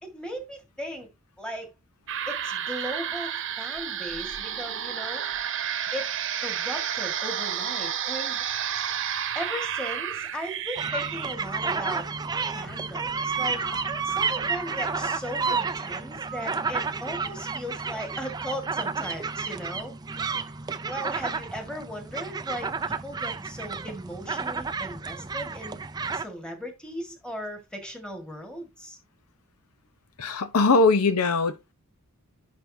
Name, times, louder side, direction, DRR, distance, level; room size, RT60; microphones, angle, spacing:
voice 1, 0.0-1.1 1.4-1.7 2.3-5.2 5.9-6.2 6.4-8.4 9.3-12.1 12.5-13.6 14.0-19.9 20.8-25.8 26.1-29.0, equal, 5° left, 1.8 m, -37 dB
sound 1, 2.1-15.2, right 9 dB, 55° right, 0.9 m, -32 dB
sound 2, 10.8-26.2, right 5 dB, 20° right, 0.4 m, -31 dB
voice 2, 30.2-31.7, left 3 dB, 90° left, 0.8 m, -21 dB
10.5 x 3.8 x 2.7 m
head